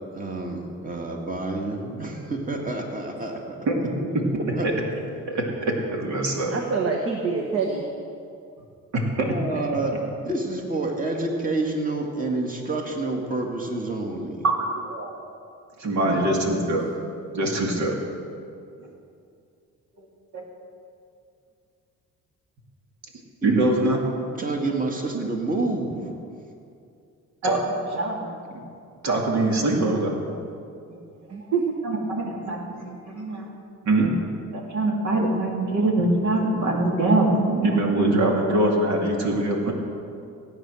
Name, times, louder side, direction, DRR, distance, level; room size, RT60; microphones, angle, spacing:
voice 1, 0.1-3.9 4.5-4.7 9.2-9.9 10.2-14.4 23.4-23.7 24.4-26.1, right 2 dB, 25° right, 1 dB, 2.2 m, -28 dB
voice 2, 5.3-6.5 8.9-9.3 14.4-15.1 15.8-16.8 17.3-17.9 20.3-20.4 23.4-24.0 25.1-25.3 27.4-28.6 29.0-30.1 30.9-31.0 31.8-33.5 33.9-34.1 34.5-39.7, right 2 dB, 70° right, 0 dB, 2.6 m, -23 dB
voice 3, 6.5-7.9 16.0-16.4 31.3-31.7, right 5 dB, 50° right, 1 dB, 1.5 m, -26 dB
17.0 x 8.9 x 6.4 m, 2.5 s
cardioid pair, 90°, 30 cm